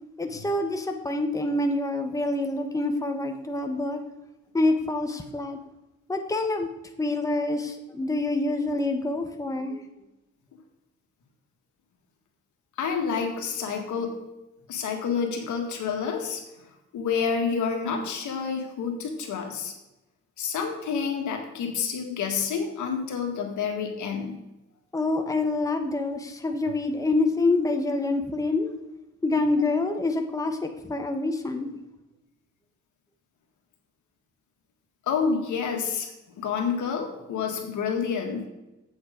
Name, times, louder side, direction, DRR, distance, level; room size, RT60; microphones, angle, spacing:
voice 1, 0.2-4.0 4.5-5.6 6.1-6.7 7.0-9.8 24.9-28.7 29.2-31.7, left 2 dB, 10° left, 4 dB, 1.0 m, -26 dB
voice 2, 12.8-14.2 14.7-16.4 16.9-19.7 20.4-24.4 35.1-36.1 36.4-38.5, left 6 dB, 90° left, 3 dB, 1.8 m, -28 dB
8.0 x 7.3 x 5.0 m, 0.97 s
cardioid pair, 105°, 29 cm